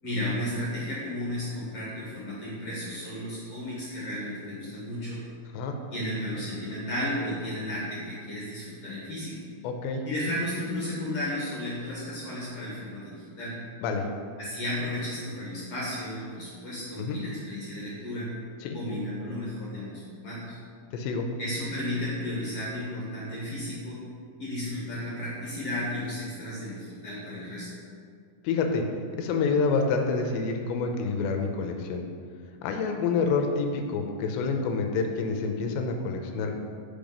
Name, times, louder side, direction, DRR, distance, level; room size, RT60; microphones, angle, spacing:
voice 1, 0.0-5.2 5.9-9.3 10.1-13.5 14.4-18.3 18.7-20.6 21.4-24.0 24.4-27.7, left 1 dB, 50° left, -8 dB, 2.0 m, -33 dB
voice 2, 9.6-10.0 13.8-14.1 17.0-17.2 18.6-18.8 20.9-21.3 28.4-28.8 29.2-32.0 32.6-36.5, left 4 dB, 90° left, 4 dB, 3.0 m, -27 dB
8.9 x 5.5 x 5.3 m, 2.1 s
omnidirectional pair, 5.1 m